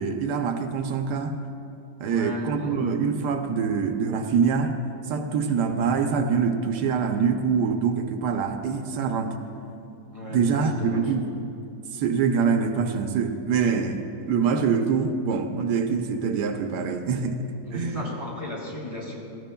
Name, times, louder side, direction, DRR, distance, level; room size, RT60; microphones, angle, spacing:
voice 1, 0.0-1.4 2.0-4.7 5.1-9.3 10.3-11.5 11.9-14.0 14.3-18.0, right 6 dB, 85° right, 6 dB, 1.3 m, -25 dB
voice 2, 2.0-2.8 10.1-11.1 17.6-19.4, left 1 dB, 20° left, -4 dB, 2.4 m, -35 dB
18.0 x 14.5 x 2.2 m, 2.5 s
omnidirectional pair, 1.8 m